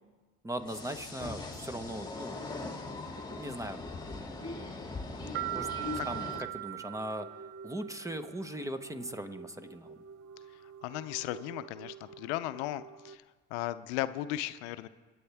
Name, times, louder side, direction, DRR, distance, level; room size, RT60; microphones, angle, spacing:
voice 1, 0.4-2.4 3.4-4.6 5.5-5.7 6.1-7.3 7.6-9.9, right 1 dB, 10° right, 10 dB, 1.0 m, -39 dB
sound 1, 0.6-6.4, left 3 dB, 15° left, 2.3 m, -40 dB
sound 2, 5.3-8.0, right 23 dB, 70° right, 0.5 m, -39 dB
sound 3, 5.4-13.2, right 5 dB, 45° right, 0.8 m, -50 dB
voice 2, 10.6-13.2 13.5-14.9, left 15 dB, 85° left, 13 dB, 0.6 m, -36 dB
26.5 x 8.8 x 3.5 m, 1.3 s
supercardioid pair, 75°, 33 cm